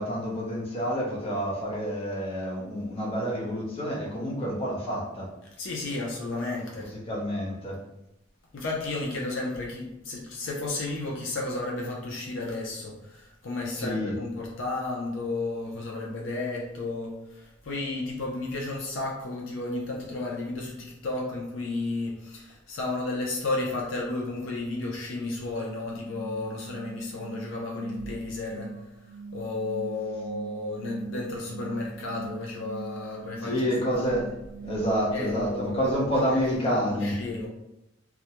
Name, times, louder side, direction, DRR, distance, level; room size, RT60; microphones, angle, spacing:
voice 1, 0.0-5.3 6.8-7.8 13.7-14.1 33.4-34.3 34.6-37.1, equal, 30° left, -5 dB, 0.7 m, -28 dB
voice 2, 5.6-6.9 8.5-28.7 29.3-33.5 33.9-34.2 35.1-37.5, left 2 dB, 70° left, -2 dB, 0.5 m, -33 dB
sound 1, 25.8-35.1, right 4 dB, 25° right, 0.5 m, -42 dB
2.3 x 2.1 x 2.8 m, 0.88 s
head